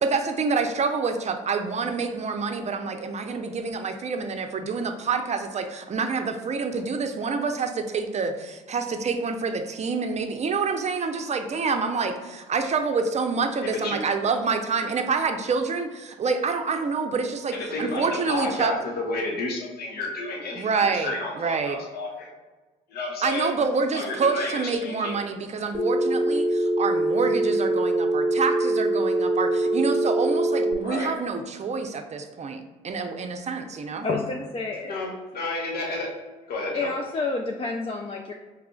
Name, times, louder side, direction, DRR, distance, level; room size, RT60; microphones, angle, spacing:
voice 1, 0.0-18.7 20.6-21.8 23.2-34.1, right 4 dB, 40° right, 6 dB, 0.5 m, -27 dB
voice 2, 17.5-22.3 22.9-23.5 23.9-25.2 30.8-31.1 34.8-36.1 36.5-36.9, left 2 dB, 60° left, -1 dB, 0.9 m, -31 dB
Telephone, 25.7-30.7, right 1 dB, 15° right, 1.0 m, -23 dB
voice 3, 34.0-35.0 36.7-38.3, left 3 dB, 30° left, 2 dB, 0.4 m, -29 dB
4.8 x 3.2 x 2.3 m, 1.3 s
hypercardioid pair, 55°, 18 cm